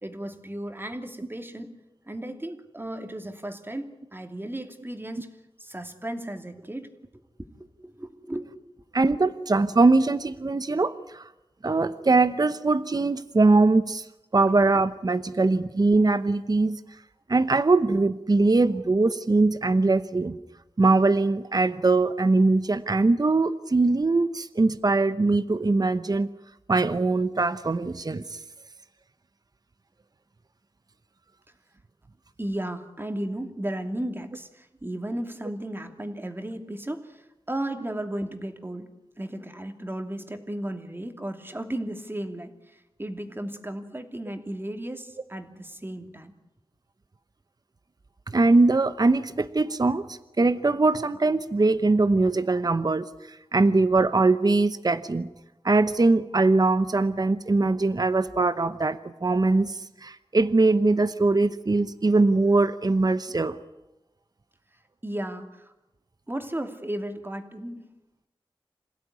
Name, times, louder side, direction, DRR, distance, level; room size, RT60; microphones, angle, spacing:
voice 1, 0.0-1.8 2.1-5.3 5.6-8.5 32.4-38.9 39.2-46.3 65.0-65.7 66.3-67.8, right 1 dB, 20° right, 6 dB, 2.7 m, -35 dB
voice 2, 8.9-11.3 11.6-14.1 14.3-16.8 17.3-20.4 20.8-26.3 26.7-28.4 48.3-55.3 55.6-63.6, right 3 dB, 40° right, 12 dB, 0.9 m, -22 dB
27.0 x 16.5 x 9.7 m, 0.95 s
wide cardioid pair, 70°, 10 cm